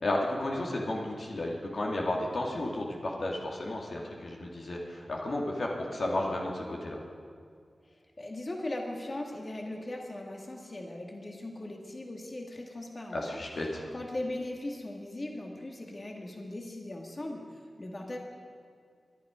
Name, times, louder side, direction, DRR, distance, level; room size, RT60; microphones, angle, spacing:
voice 1, 0.0-7.0 13.1-13.8, left 1 dB, 65° left, -2 dB, 2.0 m, -33 dB
voice 2, 8.2-13.4 13.9-17.4 17.8-18.2, left 1 dB, 40° left, 1 dB, 2.2 m, -39 dB
22.5 x 11.0 x 5.1 m, 2.1 s
wide cardioid pair, 65°, 0 cm